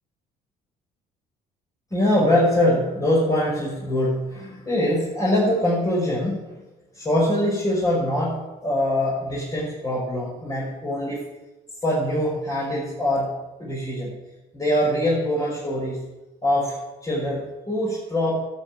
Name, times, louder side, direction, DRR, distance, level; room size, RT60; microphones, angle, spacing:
voice 1, 1.9-6.4 6.9-11.2 11.8-14.1 14.5-16.0 16.4-18.4, left 1 dB, 20° left, -7 dB, 6.0 m, -23 dB
12.5 x 9.5 x 9.0 m, 1.1 s
cardioid pair, 110°, 17 cm